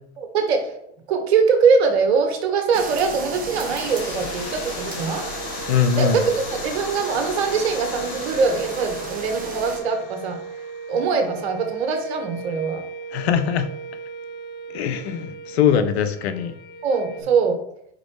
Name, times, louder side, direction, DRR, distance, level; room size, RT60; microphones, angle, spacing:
voice 1, 0.2-0.8 1.1-5.3 6.0-10.4 10.9-12.8 16.8-17.6, right 5 dB, 75° right, 1.5 m, -22 dB
sound 1, 2.7-9.8, right 3 dB, 25° right, 1.7 m, -34 dB
sound 2, 3.3-11.9, left 12 dB, 60° left, 0.6 m, -39 dB
sound 3, 4.1-17.2, right 5 dB, 30° left, 0.9 m, -37 dB
voice 2, 5.7-6.2 13.1-13.7 14.7-16.5, left 8 dB, 80° left, 1.0 m, -21 dB
5.1 x 4.4 x 4.8 m
hypercardioid pair, 105°, 32 cm